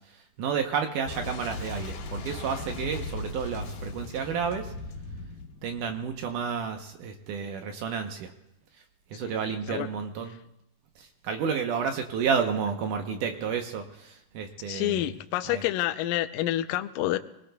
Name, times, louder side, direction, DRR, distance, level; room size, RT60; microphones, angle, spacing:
voice 1, 0.4-4.7 5.6-8.3 9.1-10.4 11.0-15.7, right 6 dB, 70° right, 5 dB, 2.2 m, -31 dB
Boom, 1.1-6.6, left 3 dB, 65° left, 2.6 m, -38 dB
voice 2, 14.7-17.2, left 14 dB, 80° left, 10 dB, 2.1 m, -28 dB
25.5 x 18.5 x 2.3 m, 0.86 s
omnidirectional pair, 4.3 m